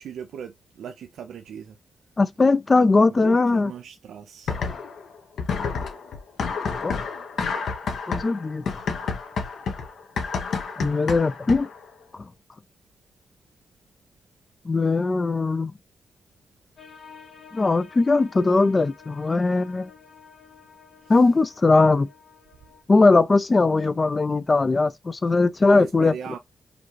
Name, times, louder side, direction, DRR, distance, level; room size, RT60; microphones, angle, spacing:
voice 1, 0.0-1.8 3.1-4.6 8.2-8.3 18.4-18.8 21.0-21.2 25.7-26.4, right 8 dB, 85° right, 0.4 m, -39 dB
voice 2, 2.2-3.7 6.8-7.0 8.1-8.6 10.8-11.7 14.7-15.7 17.5-19.9 21.1-22.1 22.9-26.1, left 3 dB, 30° left, 0.4 m, -20 dB
sound 1, 4.5-5.1 5.4-11.8, left 5 dB, 75° left, 1.0 m, -29 dB
sound 2, 16.8-22.8, left 6 dB, 55° left, 2.2 m, -49 dB
5.0 x 2.4 x 3.1 m
cardioid pair, 105°, 0 cm